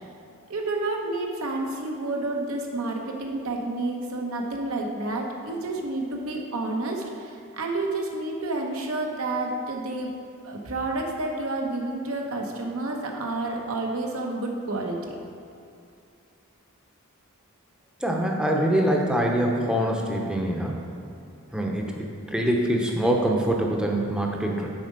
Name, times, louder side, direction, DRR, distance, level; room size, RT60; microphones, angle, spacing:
voice 1, 0.5-10.1 10.4-15.1, right 2 dB, 75° right, 1 dB, 1.0 m, -30 dB
voice 2, 18.0-20.8 21.5-24.7, right 1 dB, 5° right, 0 dB, 0.7 m, -24 dB
7.7 x 4.8 x 5.2 m, 2.5 s
head